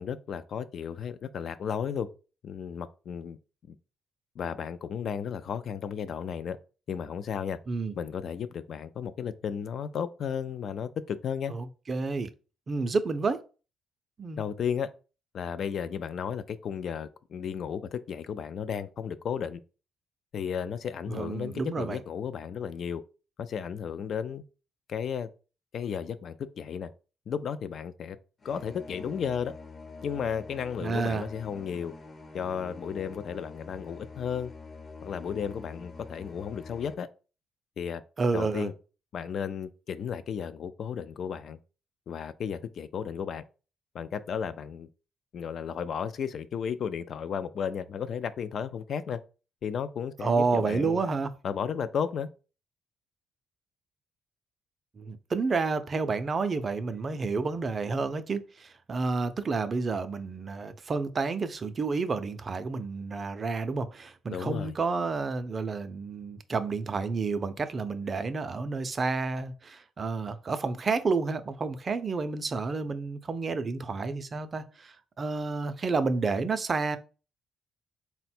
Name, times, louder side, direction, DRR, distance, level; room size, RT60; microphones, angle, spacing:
voice 1, 0.0-2.1 2.4-3.4 3.7-3.8 4.4-6.6 6.9-7.6 8.0-11.5 14.4-14.9 15.3-19.6 20.3-23.0 23.4-24.4 24.9-25.3 25.7-26.9 27.3-28.2 28.4-29.5 30.0-31.9 32.3-34.5 35.0-37.1 37.8-38.0 38.3-38.7 39.1-41.6 42.1-43.4 43.9-44.9 45.3-49.2 49.6-51.0 51.4-52.3 64.3-64.7, left 7 dB, 60° left, 0.3 m, -34 dB
voice 2, 11.5-12.3 12.7-13.4 14.2-14.4 21.1-22.0 30.8-31.3 38.2-38.7 50.2-51.3 55.0-77.0, right 4 dB, 40° right, 0.5 m, -30 dB
sound 1, 28.4-36.9, left 4 dB, 45° left, 0.8 m, -46 dB
3.8 x 2.2 x 4.3 m
cardioid pair, 90°, 0 cm